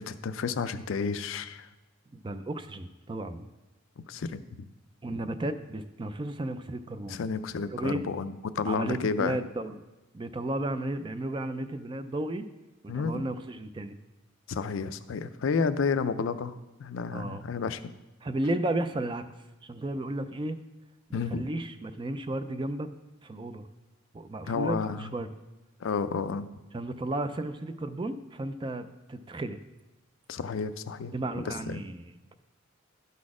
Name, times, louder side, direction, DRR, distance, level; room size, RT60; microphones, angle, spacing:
voice 1, 0.0-1.7 4.1-4.4 7.1-9.4 12.9-13.2 14.5-17.8 21.1-21.4 24.5-25.1 25.8-26.5 30.3-31.1 31.5-31.8, left 5 dB, 75° left, 12 dB, 0.4 m, -31 dB
voice 2, 2.1-3.5 5.0-7.2 7.6-8.0 8.7-9.7 10.1-12.5 12.8-14.0 17.1-17.4 18.2-19.2 19.6-20.6 21.1-22.9 23.2-23.7 24.1-25.3 26.7-29.6 31.1-32.3, right 1 dB, 25° right, 10 dB, 0.4 m, -33 dB
12.0 x 4.2 x 4.8 m, 1.0 s
head